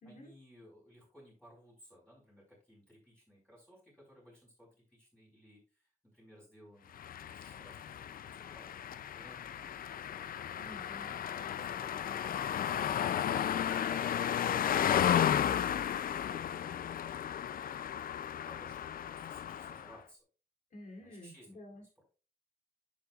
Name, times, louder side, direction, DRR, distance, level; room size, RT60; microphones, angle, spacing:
voice 1, 0.0-8.7 9.1-10.2 10.6-10.7 11.3-12.5 13.1-14.9 15.2-16.0 18.4-20.2 21.0-21.6 22.0-22.1, equal, 5° left, -5 dB, 5.0 m, -59 dB
sound 1, 7.0-19.9, left 9 dB, 85° left, 0.4 m, -34 dB
voice 2, 10.5-11.1 20.7-21.8, left 1 dB, 70° left, 0 dB, 2.9 m, -51 dB
10.0 x 7.2 x 2.4 m, 0.35 s
wide cardioid pair, 125°, 14 cm